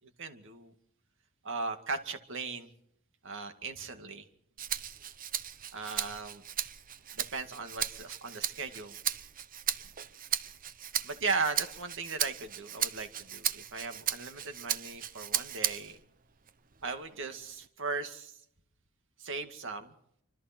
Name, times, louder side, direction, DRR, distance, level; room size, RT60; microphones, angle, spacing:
voice 1, 0.2-0.7 1.4-2.7 3.2-4.2 5.7-6.4 7.2-9.0 11.0-16.0 16.8-18.3 19.2-19.9, right 4 dB, 60° right, 7 dB, 2.2 m, -37 dB
Rattle (instrument), 4.6-16.0 16.5-17.7, right 10 dB, 40° right, 0.8 m, -36 dB
27.0 x 25.5 x 4.5 m, 0.72 s
head